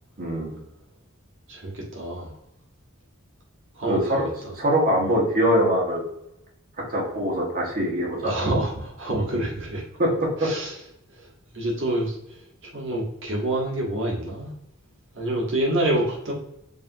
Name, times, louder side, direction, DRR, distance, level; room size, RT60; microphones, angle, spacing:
voice 1, 0.2-0.6 3.9-6.0 6.8-8.3 10.0-10.5, equal, 40° right, -4 dB, 1.2 m, -23 dB
voice 2, 1.5-2.3 3.8-4.3 8.2-9.8 10.4-10.7 11.2-11.3 11.5-12.2 12.7-14.5 15.1-16.3, right 1 dB, 60° right, -3 dB, 1.2 m, -27 dB
5.2 x 2.7 x 2.6 m, 0.79 s
head